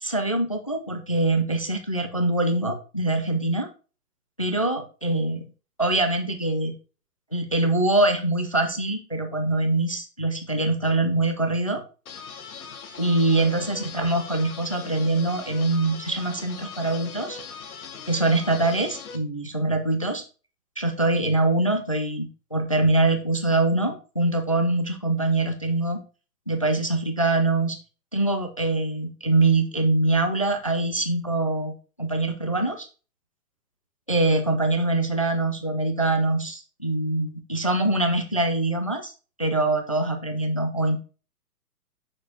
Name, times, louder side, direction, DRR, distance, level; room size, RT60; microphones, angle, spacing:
voice 1, 0.0-3.7 4.4-5.5 5.8-6.7 7.3-11.8 13.0-17.4 18.1-20.2 20.8-26.0 26.5-27.8 28.1-31.7 32.0-32.9 34.1-39.1 39.4-41.0, right 2 dB, 25° left, 6 dB, 0.3 m, -24 dB
sound 1, 12.1-19.2, left 6 dB, 60° left, 1.3 m, -40 dB
7.2 x 6.2 x 2.7 m, 0.35 s
figure-of-eight pair, 120°, 48 cm